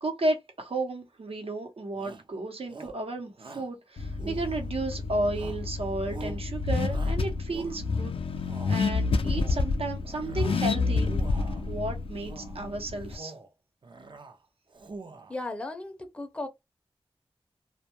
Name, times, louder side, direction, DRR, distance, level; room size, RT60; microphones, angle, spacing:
voice 1, 0.0-8.1 8.7-11.1 11.6-13.3, right 2 dB, 85° right, 0.8 m, -33 dB
Shout, 1.9-2.3 2.7-3.0 3.4-3.7 4.2-4.9 5.3-5.7 6.0-6.4 6.9-8.0 8.4-8.8 9.2-9.7 10.0-10.7 11.0-11.7 12.2-12.6 13.0-13.5 13.8-14.4 14.7-15.4, right 3 dB, 55° right, 0.5 m, -45 dB
Car / Accelerating revving vroom, 4.0-13.1, left 4 dB, 70° left, 0.4 m, -29 dB
voice 2, 15.3-16.5, left 2 dB, 10° left, 0.6 m, -36 dB
2.2 x 2.2 x 2.8 m
wide cardioid pair, 60°, 10 cm